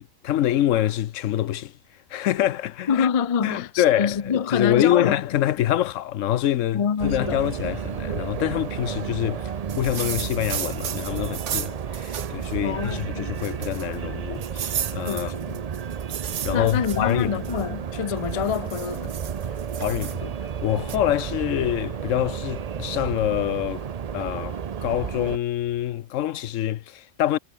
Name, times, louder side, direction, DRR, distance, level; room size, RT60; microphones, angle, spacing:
voice 1, 0.2-1.7 2.1-3.1 3.4-15.3 16.4-17.4 19.8-23.9 24.1-27.4, left 12 dB, 75° left, 1.0 m, -25 dB
voice 2, 2.9-5.2 6.7-7.4 12.6-13.3 15.1-15.5 16.5-19.1, left 7 dB, 40° left, 0.5 m, -26 dB
sound 1, 7.0-25.4, right 7 dB, 50° right, 0.5 m, -32 dB
sound 2, 9.7-12.5 12.9-13.0 13.4-14.0 14.4-17.6 18.2-20.2 20.9-21.0, right 9 dB, 65° right, 1.3 m, -34 dB
omnidirectional pair, 1.3 m